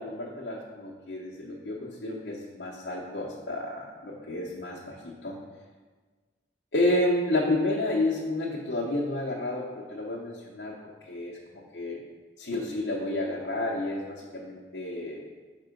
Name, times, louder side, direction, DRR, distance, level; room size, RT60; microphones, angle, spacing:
voice 1, 0.0-5.4 6.7-11.4 11.7-12.0 12.4-15.2, left 1 dB, 60° left, -5 dB, 0.8 m, -30 dB
5.4 x 3.7 x 5.0 m, 1.4 s
head